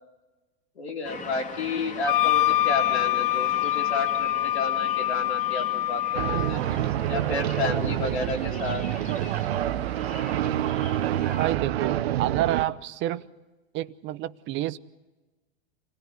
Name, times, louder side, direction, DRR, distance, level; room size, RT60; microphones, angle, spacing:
voice 1, 0.8-6.6 7.1-8.8, left 3 dB, 90° left, 4.0 m, -31 dB
sound 1, 1.0-11.5, left 4 dB, 20° left, 2.3 m, -41 dB
Wind instrument woodwind instrument, 2.1-6.6, left 14 dB, 55° left, 0.7 m, -25 dB
sound 2, 6.1-12.6, right 12 dB, 75° right, 1.0 m, -27 dB
voice 2, 11.4-13.3 13.7-14.8, right 14 dB, 35° right, 0.8 m, -28 dB
27.5 x 17.0 x 9.2 m
hypercardioid pair, 115°, 32 cm